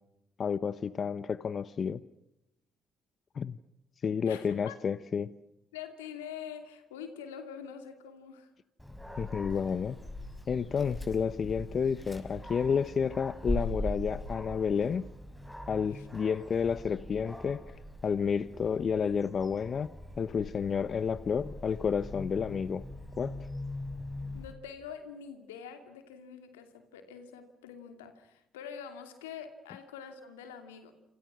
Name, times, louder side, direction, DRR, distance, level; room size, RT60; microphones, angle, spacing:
voice 1, 0.4-2.0 3.3-3.6 4.0-5.3 9.2-10.0 10.5-15.1 15.7-17.6 18.0-19.9 20.2-22.8 23.2-23.4, left 6 dB, 50° left, 16 dB, 0.9 m, -30 dB
voice 2, 4.2-4.7 5.7-8.5 15.9-16.1 24.3-30.9, left 7 dB, 90° left, 8 dB, 2.7 m, -45 dB
Dog, 8.8-24.5, left 1 dB, 5° left, 6.4 m, -41 dB
27.5 x 27.5 x 6.2 m, 0.86 s
hypercardioid pair, 55°, 0 cm